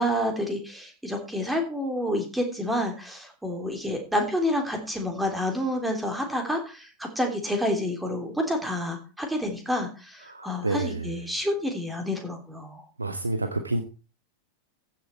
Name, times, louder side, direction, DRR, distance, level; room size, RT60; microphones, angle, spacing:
voice 1, 0.0-12.8, equal, 5° right, 3 dB, 3.3 m, -29 dB
voice 2, 10.3-11.2 13.0-13.8, right 2 dB, 80° right, 8 dB, 1.2 m, -29 dB
15.0 x 7.7 x 4.5 m, 0.34 s
figure-of-eight pair, 90°, 0 cm